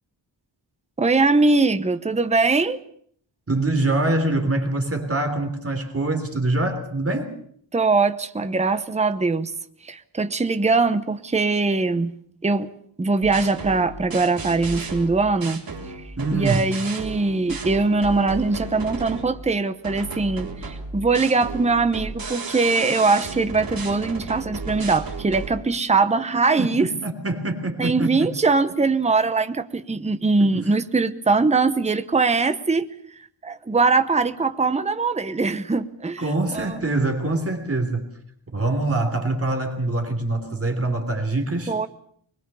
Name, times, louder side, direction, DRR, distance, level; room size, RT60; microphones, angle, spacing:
voice 1, 1.0-2.8 7.7-9.5 9.8-12.1 12.4-12.7 13.0-15.6 15.9-26.9 27.8-32.9 33.2-36.2 36.5-36.8 41.7-41.9, right 3 dB, 15° right, 10 dB, 0.9 m, -21 dB
voice 2, 3.5-7.3 16.2-16.7 26.6-28.3 30.4-30.7 36.2-38.1 38.5-41.8, right 2 dB, 30° right, 5 dB, 3.3 m, -24 dB
sound 1, 13.2-19.4 19.8-25.5, right 4 dB, 50° right, 3.9 m, -34 dB
23.0 x 21.5 x 6.9 m, 0.63 s
wide cardioid pair, 160°, 46 cm